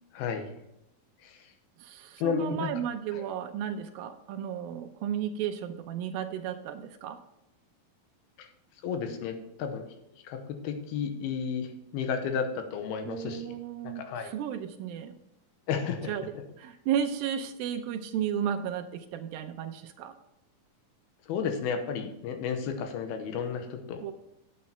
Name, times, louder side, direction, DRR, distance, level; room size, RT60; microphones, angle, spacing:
voice 1, 0.1-0.5 2.2-2.7 8.8-9.9 10.3-10.4 10.6-11.7 11.9-13.4 14.0-14.3 15.7-16.1 21.3-24.1, left 6 dB, 90° left, 6 dB, 2.9 m, -32 dB
voice 2, 1.8-7.2 13.1-15.2 16.1-20.2 24.0-24.1, right 9 dB, 80° right, 8 dB, 2.3 m, -34 dB
8.7 x 8.3 x 4.3 m, 0.84 s
omnidirectional pair, 4.4 m